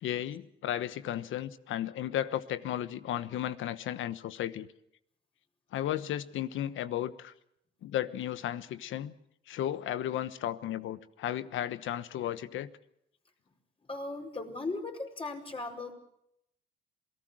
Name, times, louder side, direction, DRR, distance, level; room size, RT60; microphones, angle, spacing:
voice 1, 0.0-4.7 5.7-7.3 7.8-9.1 9.5-12.7, left 11 dB, 80° left, 14 dB, 1.2 m, -34 dB
voice 2, 13.9-15.9, left 3 dB, 25° left, 3 dB, 5.0 m, -37 dB
27.5 x 18.0 x 6.3 m, 0.77 s
cardioid pair, 90°, 20 cm